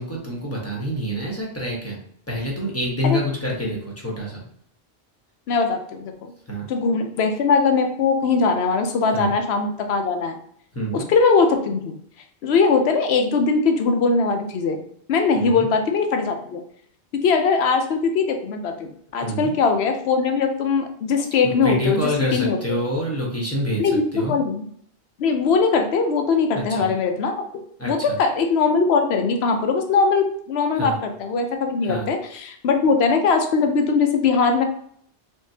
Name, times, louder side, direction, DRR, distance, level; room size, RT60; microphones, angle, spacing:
voice 1, 0.0-2.0 2.3-4.4 6.5-6.7 9.1-9.3 10.7-11.1 15.3-15.7 19.2-19.5 21.4-23.8 24.1-24.4 26.5-26.9 27.8-28.2 30.7-31.0 31.9-32.1, equal, 15° left, -3 dB, 0.9 m, -27 dB
voice 2, 5.5-6.1 6.7-10.4 10.9-11.9 12.4-14.8 15.1-16.6 17.2-22.0 22.3-22.8 23.8-24.0 24.3-24.6 25.2-34.6, left 4 dB, 65° left, 5 dB, 0.9 m, -21 dB
3.6 x 3.6 x 2.7 m, 0.65 s
omnidirectional pair, 1.2 m